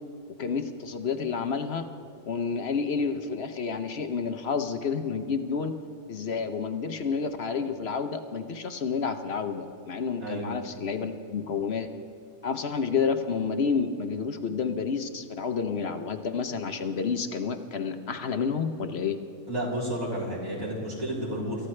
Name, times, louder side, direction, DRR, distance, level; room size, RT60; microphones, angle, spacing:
voice 1, 0.4-1.9 2.2-5.7 6.1-11.9 12.4-19.2, left 5 dB, 50° left, 7 dB, 0.9 m, -30 dB
voice 2, 19.5-21.7, equal, 60° right, -6 dB, 4.2 m, -31 dB
26.5 x 14.0 x 3.2 m, 2.5 s
omnidirectional pair, 1.6 m